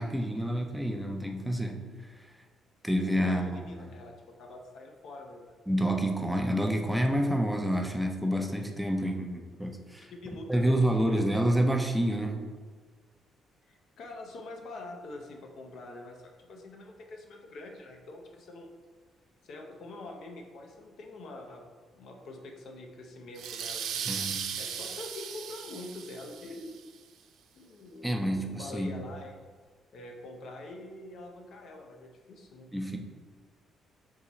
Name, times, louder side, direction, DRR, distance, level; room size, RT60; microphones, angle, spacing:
voice 1, 0.0-1.8 2.8-3.9 5.7-10.1 10.5-12.4 24.1-24.5 28.0-28.9 32.7-33.0, equal, 5° right, 3 dB, 0.5 m, -28 dB
voice 2, 3.2-5.6 10.0-11.3 13.7-18.7 19.4-21.7 21.9-24.2 24.6-26.8 27.5-29.4 29.9-33.0, left 2 dB, 70° left, 2 dB, 0.6 m, -45 dB
sound 1, 23.4-26.8, right 7 dB, 85° right, 0.4 m, -37 dB
3.8 x 2.9 x 4.1 m, 1.5 s
cardioid pair, 90°, 0 cm